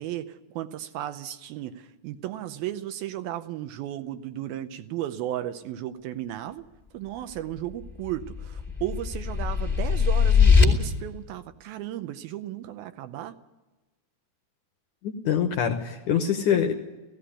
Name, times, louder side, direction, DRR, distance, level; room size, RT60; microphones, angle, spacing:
voice 1, 0.0-6.7 6.9-13.4, right 13 dB, 75° right, 10 dB, 2.4 m, -34 dB
sound 1, 7.8-10.6, left 6 dB, 15° left, 1.5 m, -21 dB
voice 2, 15.0-16.7, left 8 dB, 70° left, 5 dB, 2.0 m, -24 dB
16.5 x 16.5 x 10.0 m, 1.2 s
omnidirectional pair, 4.7 m